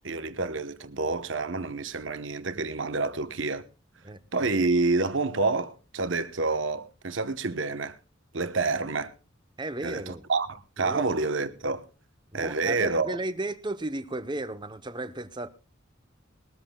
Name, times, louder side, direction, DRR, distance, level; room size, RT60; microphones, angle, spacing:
voice 1, 0.0-3.6 4.3-8.0 8.3-9.1 9.8-11.9 12.3-13.2, right 3 dB, 65° right, 1.1 m, -28 dB
voice 2, 4.0-4.5 9.6-10.2 10.8-11.0 12.3-15.5, right 2 dB, 25° right, 0.9 m, -34 dB
21.5 x 13.5 x 2.3 m
head